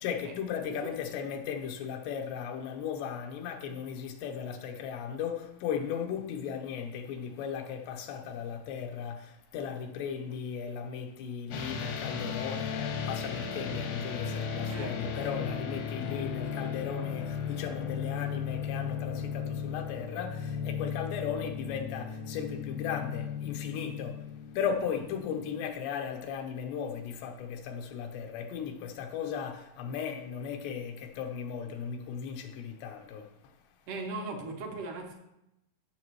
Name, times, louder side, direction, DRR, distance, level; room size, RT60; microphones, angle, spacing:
voice 1, 0.0-24.2 24.5-33.6, left 7 dB, 90° left, 3.1 m, -36 dB
sound 1, 11.5-25.7, left 7 dB, 75° left, 1.7 m, -36 dB
voice 2, 14.7-15.1 33.9-35.1, right 3 dB, 75° right, 1.9 m, -38 dB
16.0 x 6.7 x 3.1 m
omnidirectional pair, 4.8 m